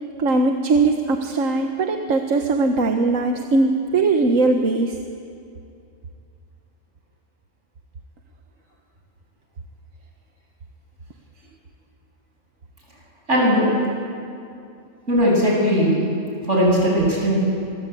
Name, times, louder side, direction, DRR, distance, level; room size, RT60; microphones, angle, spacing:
voice 1, 0.2-5.0, right 3 dB, 90° right, 4 dB, 1.7 m, -20 dB
voice 2, 13.3-13.7 15.1-16.0 16.4-17.4, equal, 70° right, -3 dB, 8.5 m, -18 dB
26.0 x 22.5 x 8.5 m, 2.5 s
omnidirectional pair, 1.3 m